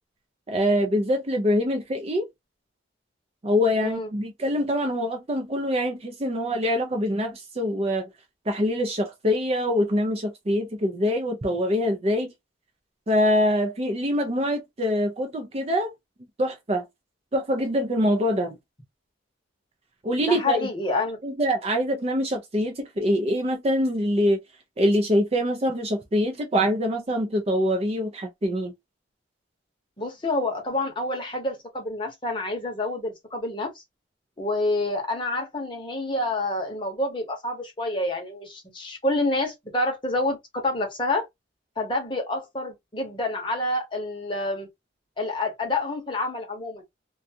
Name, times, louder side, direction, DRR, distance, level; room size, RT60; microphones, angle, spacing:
voice 1, 0.5-2.3 3.4-8.1 8.5-12.3 13.1-15.9 16.4-16.9 17.3-18.6 20.0-20.7 21.2-24.4 24.8-28.7, equal, 30° right, 0.5 m, -24 dB
voice 2, 20.3-21.2 30.0-33.7 34.4-40.4 40.6-41.3 41.8-44.7 45.2-46.8, left 2 dB, 25° left, 0.8 m, -28 dB
2.5 x 2.3 x 2.7 m
head